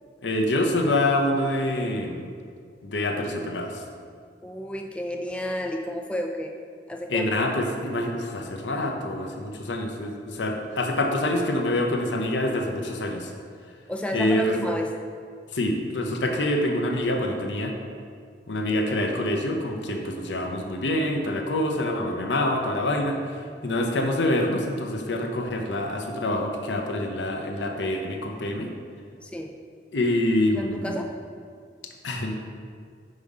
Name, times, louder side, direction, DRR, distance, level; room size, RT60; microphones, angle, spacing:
voice 1, 0.2-2.2 2.8-3.8 7.1-13.3 14.1-14.6 15.5-17.7 18.5-23.2 23.6-28.7 29.9-30.9 32.0-32.3, left 1 dB, 85° left, 3 dB, 0.8 m, -26 dB
voice 2, 4.4-6.6 6.9-7.3 13.9-15.0 29.2-29.6 30.5-31.2, equal, 5° left, 2 dB, 0.3 m, -31 dB
5.3 x 4.9 x 5.5 m, 2.2 s
head